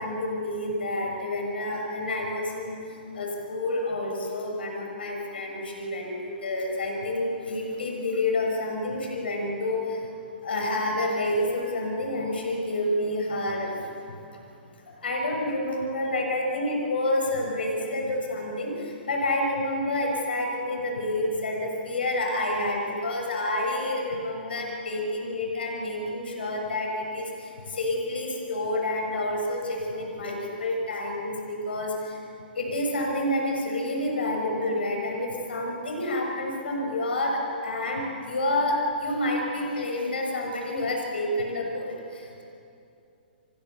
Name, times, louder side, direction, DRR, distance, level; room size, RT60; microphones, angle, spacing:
voice 1, 0.0-10.1 10.4-13.8 14.1-14.3 14.9-32.2 32.5-42.4, left 1 dB, 75° left, 1 dB, 6.4 m, -29 dB
30.0 x 27.5 x 7.0 m, 2.6 s
hypercardioid pair, 125°, 6 cm